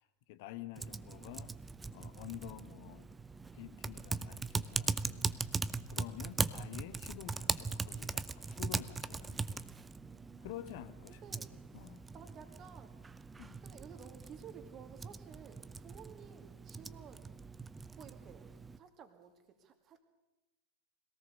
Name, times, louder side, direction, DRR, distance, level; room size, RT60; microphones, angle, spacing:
voice 1, 0.0-1.6 1.9-3.1 3.5-5.4 5.9-9.7 10.4-11.2 11.7-12.0 13.4-13.6, left 14 dB, 50° left, 12 dB, 1.3 m, -49 dB
Typing, 0.8-18.8, right 4 dB, 10° right, 0.6 m, -40 dB
voice 2, 2.4-3.0 5.4-5.8 6.1-6.2 10.0-10.8 11.1-13.0 13.6-17.3 17.9-18.5 18.8-20.0, right 7 dB, 30° right, 7 dB, 2.3 m, -55 dB
22.0 x 17.5 x 6.7 m, 1.1 s
figure-of-eight pair, 90°, 0 cm